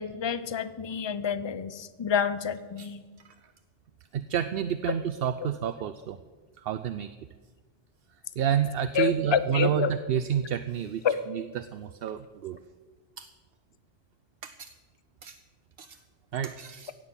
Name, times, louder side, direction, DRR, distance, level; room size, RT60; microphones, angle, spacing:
voice 1, 0.0-3.0 9.0-9.9 11.0-11.2, left 7 dB, 30° left, 14 dB, 0.6 m, -28 dB
voice 2, 4.1-6.2 6.6-7.2 8.4-12.6 13.2-13.3 14.4-14.7 15.2-15.4 15.8-16.0 16.3-16.9, right 9 dB, 70° right, 11 dB, 0.8 m, -30 dB
16.5 x 6.4 x 8.9 m, 1.3 s
omnidirectional pair, 1.1 m